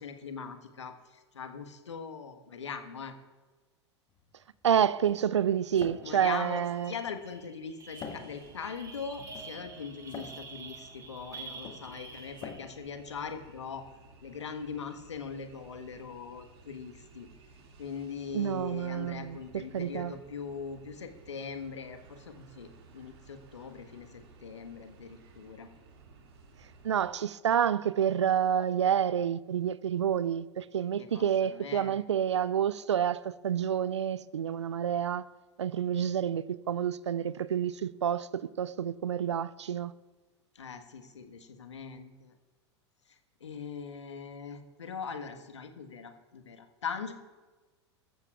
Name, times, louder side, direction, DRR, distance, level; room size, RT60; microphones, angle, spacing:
voice 1, 0.0-3.1 6.0-13.9 14.2-17.3 17.8-25.7 31.0-31.9 40.5-42.3 43.1-47.1, left 6 dB, 75° left, 1.4 m, -41 dB
sound 1, 4.1-13.9, left 5 dB, 30° left, 1.7 m, -49 dB
voice 2, 4.6-6.9 18.3-20.1 26.8-35.2 35.6-39.9, right 9 dB, 75° right, 0.5 m, -29 dB
sound 2, 6.0-6.2 6.5-12.9, right 4 dB, 20° right, 2.7 m, -48 dB
sound 3, 8.0-27.1, right 3 dB, 60° right, 2.3 m, -56 dB
20.5 x 14.0 x 2.4 m
figure-of-eight pair, 90°, 15 cm